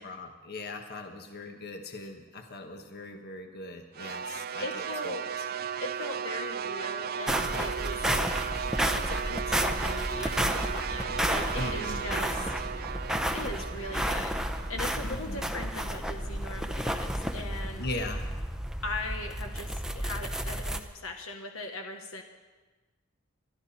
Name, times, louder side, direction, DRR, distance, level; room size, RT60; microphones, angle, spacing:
voice 1, 0.0-5.1 11.5-12.0 15.0-15.4 17.8-18.3, left 2 dB, 50° left, 4 dB, 1.5 m, -39 dB
sound 1, 3.9-16.2, right 7 dB, 45° right, 0.5 m, -36 dB
voice 2, 4.6-5.6 5.8-8.7 9.0-12.5 13.3-14.3 14.7-17.9 18.8-22.2, left 2 dB, 75° left, 4 dB, 1.5 m, -39 dB
sound 2, 7.3-20.8, equal, 5° right, 0.8 m, -32 dB
sound 3, 10.9-18.6, equal, 20° left, 2.6 m, -50 dB
25.5 x 12.0 x 4.3 m, 1.2 s
head